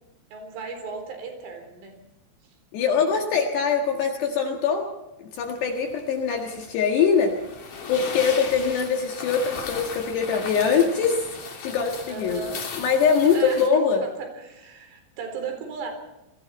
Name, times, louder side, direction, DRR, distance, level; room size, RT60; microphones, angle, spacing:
voice 1, 0.3-1.9 2.4-2.5 2.9-3.2 12.1-12.6 13.3-13.6 14.0-15.9, right 4 dB, 70° right, 5 dB, 6.5 m, -36 dB
voice 2, 2.7-4.8 5.2-7.3 7.9-11.3 11.6-12.4 12.8-14.1, left 6 dB, 65° left, 2 dB, 3.5 m, -22 dB
sound 1, 5.4-13.7, left 5 dB, 45° left, 4.1 m, -37 dB
29.5 x 21.5 x 4.3 m, 0.94 s
omnidirectional pair, 5.9 m